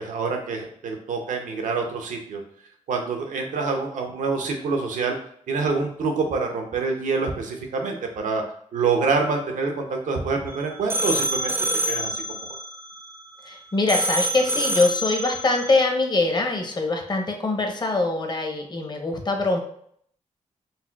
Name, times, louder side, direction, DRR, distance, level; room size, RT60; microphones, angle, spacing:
voice 1, 0.0-2.4 2.9-5.2 5.5-8.4 8.7-11.5 11.9-12.5, right 4 dB, 85° right, 3 dB, 0.6 m, -26 dB
sound 1, 10.5-13.5 13.9-15.8, right 1 dB, 20° right, 0.4 m, -27 dB
voice 2, 13.4-19.6, left 3 dB, 35° left, 3 dB, 0.7 m, -23 dB
4.1 x 2.2 x 2.2 m, 0.64 s
cardioid pair, 65°, 13 cm